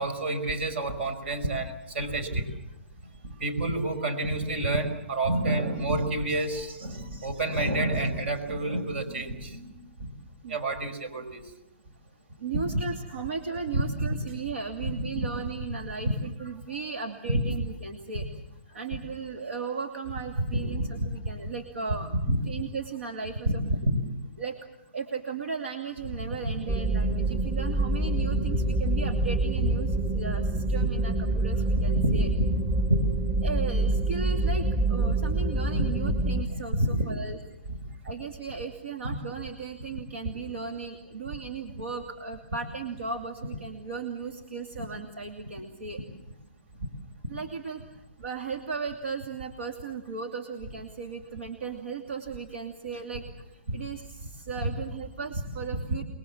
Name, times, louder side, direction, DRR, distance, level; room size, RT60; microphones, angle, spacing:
voice 1, 0.0-2.5 3.4-9.7 10.0-10.1 10.5-11.5 12.5-12.6 13.7-14.2 14.8-15.3 17.3-17.4 20.4-20.9 21.2-21.3 22.3-22.4 23.5-24.0 26.3-26.6 28.1-28.9 29.6-29.7 31.8-32.5 32.9-33.0 35.2-35.3 35.7-35.9 36.5-37.1 37.7-37.8 39.1-39.2 53.7-53.8 54.6-54.7, right 1 dB, 65° right, 11 dB, 5.5 m, -28 dB
voice 2, 12.4-18.3 18.7-22.2 22.5-23.6 24.4-24.6 24.9-32.3 33.4-37.4 38.0-46.0 47.3-47.8 48.2-56.0, right 5 dB, 80° right, 5 dB, 2.7 m, -36 dB
sound 1, 26.7-36.4, right 2 dB, 20° right, 1.6 m, -26 dB
29.0 x 21.5 x 7.3 m, 0.91 s
hypercardioid pair, 150°, 7 cm